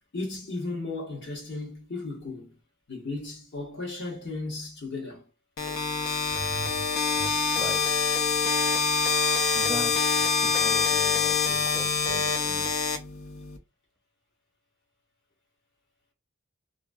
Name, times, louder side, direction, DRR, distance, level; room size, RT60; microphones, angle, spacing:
voice 1, 0.1-2.6 2.9-5.3, left 3 dB, 60° left, 1.2 m, -35 dB
sound 1, 5.6-13.6, left 6 dB, 80° left, 0.5 m, -25 dB
voice 2, 6.3-6.9 7.2-8.6 9.5-12.7, right 1 dB, ahead, 0.6 m, -40 dB
2.9 x 2.6 x 2.3 m
head